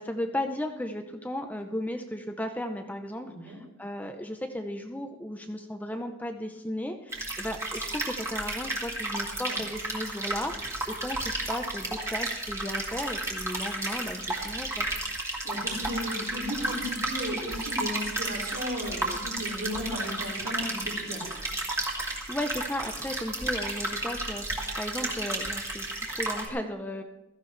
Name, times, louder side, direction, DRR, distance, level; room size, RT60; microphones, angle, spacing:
voice 1, 0.0-14.9 22.0-27.0, left 1 dB, 5° left, 5 dB, 0.6 m, -35 dB
voice 2, 3.2-3.6 9.5-9.6 15.4-21.2, equal, 75° right, -2 dB, 4.9 m, -35 dB
sound 1, 7.1-26.5, right 2 dB, 15° right, 1.8 m, -33 dB
16.0 x 14.0 x 3.3 m, 0.96 s
head